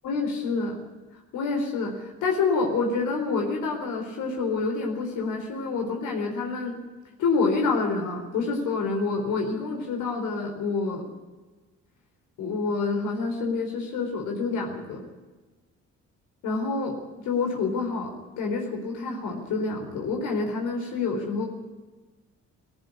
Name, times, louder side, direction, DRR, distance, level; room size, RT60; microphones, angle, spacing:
voice 1, 0.0-0.8 1.3-6.8 7.2-11.0 12.4-15.0 16.4-17.0 17.2-21.5, left 4 dB, 85° left, 1 dB, 4.3 m, -27 dB
19.0 x 14.0 x 9.9 m, 1.2 s
cardioid pair, 90°, 30 cm